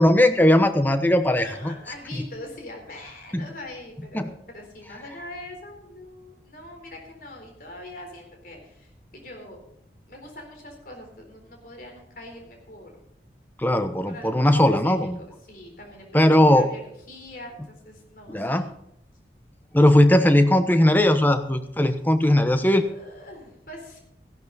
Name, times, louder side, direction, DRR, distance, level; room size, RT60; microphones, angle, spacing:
voice 1, 0.0-1.7 3.3-3.4 4.1-4.3 13.6-15.2 16.1-16.7 18.3-18.6 19.7-22.8, left 1 dB, 10° left, 8 dB, 0.9 m, -18 dB
voice 2, 1.4-9.6 10.1-12.9 14.0-18.7 22.5-24.0, left 1 dB, 50° left, 2 dB, 3.9 m, -43 dB
15.5 x 11.5 x 4.1 m, 0.74 s
head